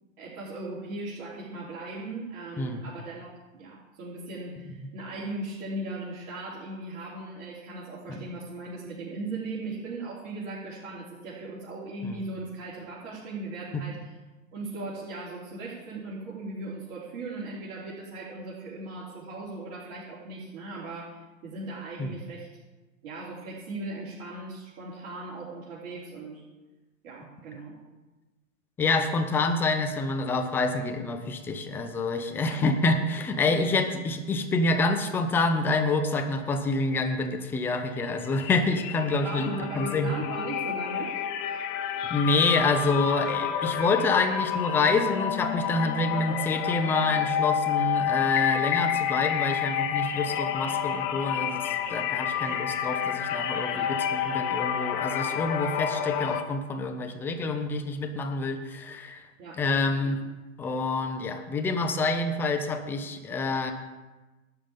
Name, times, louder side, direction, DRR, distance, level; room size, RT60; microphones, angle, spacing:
voice 1, 0.2-3.3 3.5-14.1 14.5-22.5 23.0-26.4 27.0-27.8 32.5-32.6 39.2-41.1 53.7-54.0 59.4-59.6 60.0-60.2, right 2 dB, 45° right, -9 dB, 3.7 m, -38 dB
voice 2, 28.8-40.1 42.1-59.2 59.6-60.2 60.6-63.7, left 3 dB, 5° left, 5 dB, 0.4 m, -27 dB
sound 1, 37.8-38.1 38.3-56.4, left 9 dB, 30° left, 0.9 m, -29 dB
12.0 x 5.2 x 8.9 m, 1.2 s
hypercardioid pair, 120°, 41 cm